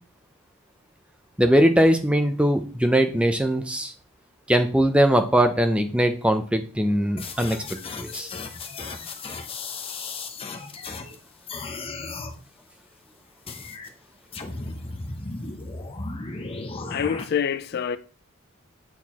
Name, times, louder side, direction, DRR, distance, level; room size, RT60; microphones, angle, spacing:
voice 1, 1.4-3.9 4.5-7.6 8.0-8.3, equal, 5° right, 0.6 m, -20 dB
sound 1, 7.2-11.2 11.5-12.4 13.5-13.9 14.3-17.2, left 3 dB, 25° left, 0.8 m, -35 dB
voice 2, 16.9-18.0, left 7 dB, 45° left, 0.3 m, -26 dB
8.2 x 4.4 x 4.3 m
head